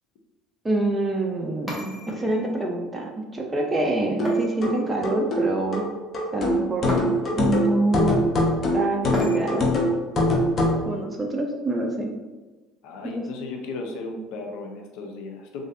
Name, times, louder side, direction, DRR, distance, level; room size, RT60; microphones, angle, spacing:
voice 1, 0.6-5.8 6.3-6.9 7.4-8.2 8.7-9.7 10.8-12.1 13.0-13.2, right 2 dB, 20° right, 1 dB, 0.6 m, -26 dB
sound 1, 1.7-2.6 4.2-5.2 6.9-7.5 9.1-9.8, left 1 dB, 5° right, 1.1 m, -33 dB
sound 2, 4.2-10.8, left 1 dB, 40° left, 0.8 m, -23 dB
voice 2, 12.8-15.7, left 3 dB, 70° left, 3 dB, 0.5 m, -35 dB
3.2 x 2.5 x 2.6 m, 1.2 s
hypercardioid pair, 70°, 0 cm